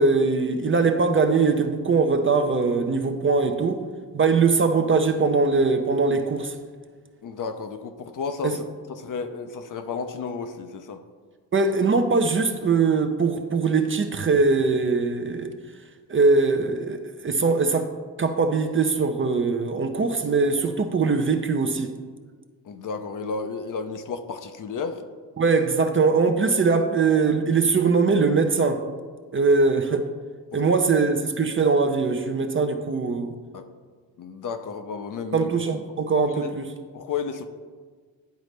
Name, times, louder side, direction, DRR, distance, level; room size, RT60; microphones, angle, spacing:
voice 1, 0.0-3.8 4.1-6.6 8.4-8.6 11.5-15.5 16.1-17.9 18.2-21.9 25.4-28.8 29.3-30.1 30.5-33.3 35.3-36.7, right 4 dB, 30° right, 6 dB, 0.5 m, -21 dB
voice 2, 7.2-8.6 8.9-11.0 22.6-25.0 30.5-30.7 33.5-33.7 34.2-35.5 36.2-36.5 36.9-37.4, left 5 dB, 45° left, 7 dB, 0.6 m, -32 dB
10.5 x 3.9 x 3.3 m, 1.5 s
supercardioid pair, 70°, 45 cm